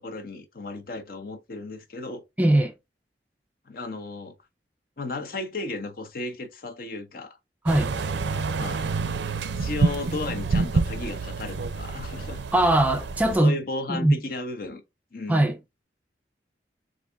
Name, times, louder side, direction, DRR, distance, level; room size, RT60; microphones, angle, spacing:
voice 1, 0.0-2.2 3.7-4.3 5.0-7.4 8.6-8.9 9.6-12.4 13.2-14.8 15.1-15.5, left 2 dB, 55° left, 0.7 m, -34 dB
voice 2, 2.4-2.7 7.6-8.0 12.5-13.6 13.9-14.2 15.3-15.6, right 1 dB, 10° right, 0.3 m, -20 dB
sound 1, 7.7-13.4, right 4 dB, 80° right, 0.5 m, -28 dB
4.0 x 2.6 x 3.4 m
head